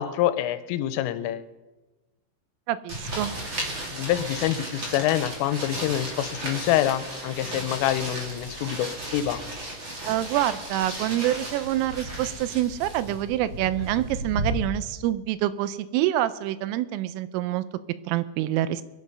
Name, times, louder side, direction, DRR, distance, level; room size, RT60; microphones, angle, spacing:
voice 1, 0.0-1.5 3.9-9.4, left 12 dB, 85° left, 12 dB, 3.3 m, -26 dB
voice 2, 2.7-3.4 10.1-17.6 18.1-18.8, right 13 dB, 85° right, 15 dB, 3.2 m, -26 dB
sound 1, 2.9-14.5, right 1 dB, 30° right, 2.4 m, -34 dB
21.5 x 11.0 x 5.5 m, 1.1 s
omnidirectional pair, 5.8 m